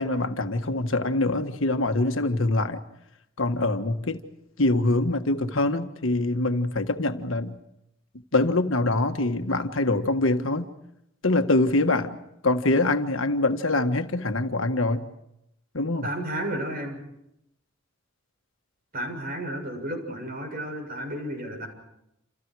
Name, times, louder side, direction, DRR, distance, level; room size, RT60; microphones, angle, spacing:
voice 1, 0.0-2.8 3.4-4.2 4.6-7.5 8.3-10.7 11.2-12.2 12.4-15.0 15.7-16.1, left 2 dB, 70° left, 1.6 m, -24 dB
voice 2, 16.0-17.0 18.9-21.7, right 1 dB, 45° right, 7.2 m, -32 dB
29.0 x 28.5 x 4.8 m
head